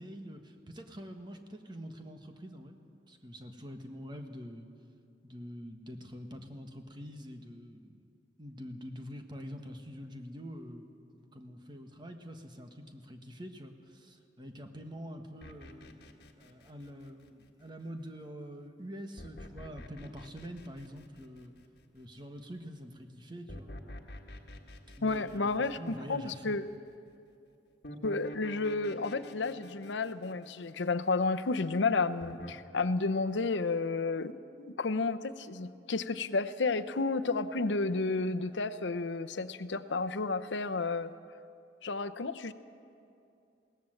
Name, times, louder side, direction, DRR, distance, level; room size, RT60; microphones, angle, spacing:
voice 1, 0.0-2.8 3.1-4.7 5.2-8.1 8.4-10.9 11.1-16.0 16.4-21.5 21.9-23.7 25.0-26.6, equal, 25° right, 5 dB, 1.5 m, -45 dB
sound 1, 15.4-17.6 19.2-21.8 23.5-26.3 27.8-31.3 32.2-32.5, equal, 60° left, 1.7 m, -48 dB
voice 2, 25.0-26.6 28.0-41.1 41.8-42.5, left 3 dB, 90° left, 10 dB, 0.7 m, -31 dB
21.0 x 17.5 x 7.9 m, 2.5 s
head